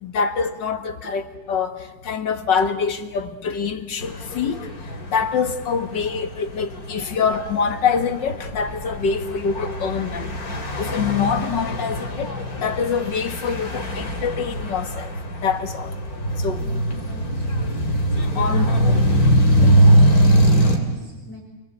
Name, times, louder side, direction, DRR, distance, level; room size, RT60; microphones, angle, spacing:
voice 1, 0.0-4.6 5.1-10.4 10.8-12.3 12.6-15.9 16.4-16.6 18.4-18.9 19.6-19.7, left 6 dB, 90° left, 8 dB, 2.3 m, -25 dB
sound 1, 4.0-20.8, right 1 dB, 55° left, 3.5 m, -22 dB
voice 2, 16.6-17.8 18.2-18.8 19.5-21.4, right 1 dB, 45° right, -1 dB, 5.2 m, -41 dB
27.5 x 23.0 x 8.3 m, 1.1 s
omnidirectional pair, 1.9 m